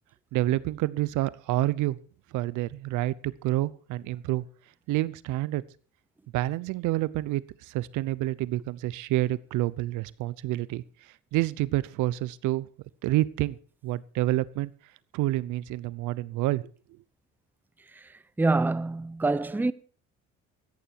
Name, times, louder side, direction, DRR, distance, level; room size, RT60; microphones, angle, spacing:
voice 1, 0.3-2.0 2.3-4.4 4.9-5.6 6.3-10.8 11.3-12.7 13.0-13.6 13.8-14.7 15.1-16.6, right 16 dB, 70° right, 0.8 m, -28 dB
voice 2, 18.4-19.7, right 3 dB, 5° right, 0.6 m, -25 dB
14.5 x 10.5 x 4.6 m
supercardioid pair, 80°, 32 cm